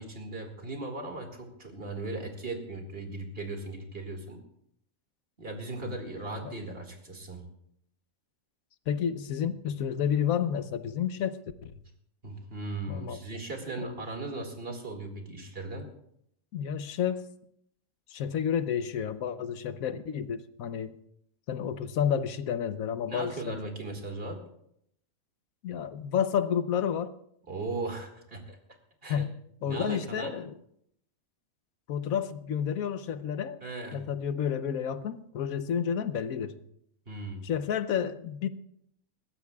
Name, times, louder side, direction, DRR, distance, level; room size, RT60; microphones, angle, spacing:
voice 1, 0.0-4.4 5.4-7.4 12.2-15.9 23.1-24.4 27.5-28.6 29.0-29.2 29.6-30.4 33.6-34.1 37.1-37.5, right 2 dB, 45° right, 3 dB, 2.3 m, -38 dB
voice 2, 8.9-11.7 12.9-13.2 13.8-13.9 16.5-17.3 18.1-21.0 21.5-23.6 25.6-27.1 29.1-29.3 29.6-30.5 31.9-33.6 33.9-36.6 37.4-38.5, left 8 dB, 85° left, 12 dB, 1.2 m, -30 dB
21.0 x 15.5 x 2.3 m, 0.72 s
omnidirectional pair, 1.4 m